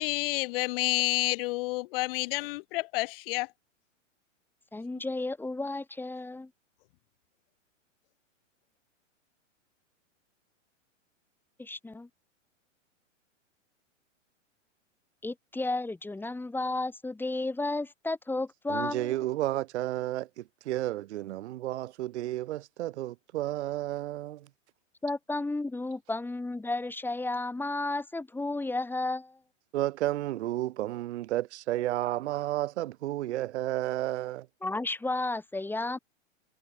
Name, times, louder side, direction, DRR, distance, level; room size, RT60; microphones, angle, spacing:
voice 1, 0.0-3.5, left 22 dB, 45° left, 1.6 m, -29 dB
voice 2, 4.7-6.5 11.6-12.1 15.2-19.1 25.0-29.4 34.6-36.0, left 2 dB, 5° left, 2.2 m, -33 dB
voice 3, 18.7-24.5 29.7-34.5, right 15 dB, 65° right, 0.7 m, -32 dB
hypercardioid pair, 120°, 38 cm